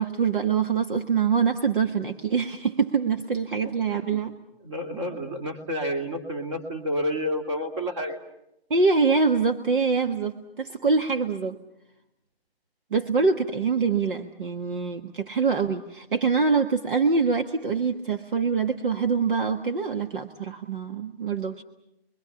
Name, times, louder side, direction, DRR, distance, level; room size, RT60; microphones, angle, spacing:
voice 1, 0.0-4.3 8.7-11.6 12.9-21.6, right 5 dB, 55° right, 6 dB, 1.5 m, -24 dB
voice 2, 3.6-4.1 4.6-8.2, equal, 30° right, 4 dB, 3.1 m, -30 dB
30.0 x 23.0 x 7.1 m, 0.84 s
hypercardioid pair, 175°, 32 cm